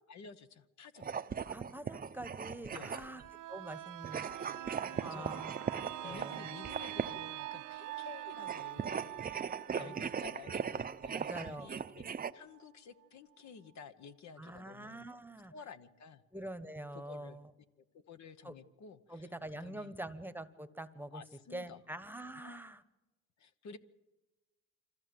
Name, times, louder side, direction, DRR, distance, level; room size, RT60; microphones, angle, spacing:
voice 1, 0.1-1.1 2.7-2.9 4.9-5.5 6.0-12.0 12.3-15.1 15.5-16.2 16.9-17.4 17.9-19.9 21.1-21.8 22.4-22.6 23.4-23.8, left 6 dB, 65° left, 11 dB, 1.2 m, -52 dB
sound 1, 1.0-3.3 4.0-7.3 8.4-12.3, right 6 dB, 30° right, 0.6 m, -39 dB
voice 2, 1.5-3.2 3.5-4.3 5.0-5.5 5.8-6.6 9.8-9.9 11.1-11.7 14.4-15.5 16.3-17.5 18.4-18.6 19.1-21.2 21.5-22.8, right 1 dB, 5° right, 12 dB, 1.1 m, -45 dB
sound 2, 3.1-12.6 13.0-13.1, right 15 dB, 80° right, 0.8 m, -45 dB
25.0 x 15.0 x 7.8 m, 1.1 s
cardioid pair, 90°, 30 cm